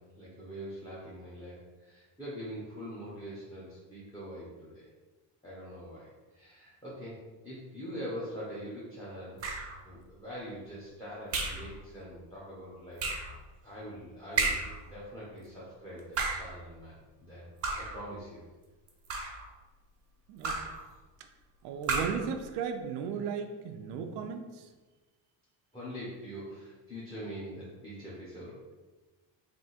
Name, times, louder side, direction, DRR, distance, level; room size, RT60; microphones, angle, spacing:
voice 1, 0.0-4.9 5.4-9.4 9.8-13.1 13.6-18.5 25.7-28.6, equal, 10° left, -8 dB, 0.9 m, -43 dB
sound 1, 9.4-9.8 11.3-11.7 13.0-13.3 14.4-14.8 16.0-16.5 17.6-18.0 18.9-19.5 20.4-20.8 21.8-22.3, right 3 dB, 30° right, 0.7 m, -32 dB
voice 2, 20.3-20.6 21.2-21.3 21.6-24.7, right 6 dB, 65° right, 5 dB, 0.5 m, -36 dB
3.5 x 2.8 x 4.2 m, 1.2 s
cardioid pair, 140°, 45 cm